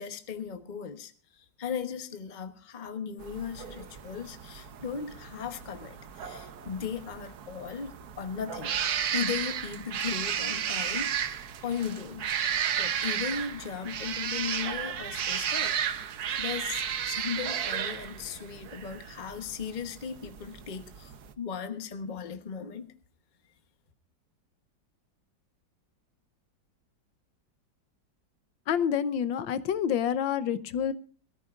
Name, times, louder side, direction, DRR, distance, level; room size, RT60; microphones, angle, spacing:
voice 1, 0.0-8.8 9.1-11.3 11.6-12.3 12.8-15.8 16.4-22.9, left 7 dB, 30° left, 1.0 m, -37 dB
sound 1, 3.2-21.3, right 8 dB, 60° right, 1.3 m, -33 dB
voice 2, 28.7-30.9, left 8 dB, 85° left, 1.6 m, -28 dB
22.0 x 14.0 x 2.5 m
omnidirectional pair, 2.0 m